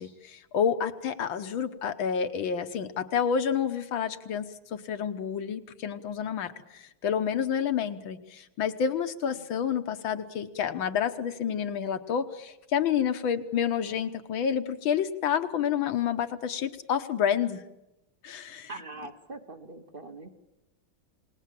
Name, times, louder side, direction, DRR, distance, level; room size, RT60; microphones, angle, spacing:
voice 1, 0.0-17.6 18.2-18.7, left 8 dB, 70° left, 9 dB, 1.8 m, -29 dB
voice 2, 18.7-20.3, right 3 dB, 30° right, 8 dB, 1.2 m, -42 dB
28.5 x 19.5 x 7.5 m, 0.95 s
omnidirectional pair, 2.3 m